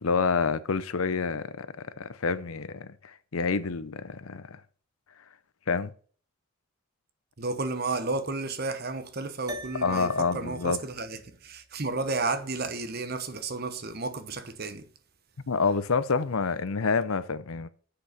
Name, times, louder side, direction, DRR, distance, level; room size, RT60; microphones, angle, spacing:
voice 1, 0.0-4.6 5.7-5.9 9.8-10.8 15.5-17.7, left 5 dB, 75° left, 0.7 m, -28 dB
voice 2, 7.4-14.8, right 3 dB, 45° right, 1.0 m, -32 dB
sound 1, 9.5-14.1, right 1 dB, 15° right, 1.1 m, -46 dB
7.8 x 6.7 x 5.9 m
head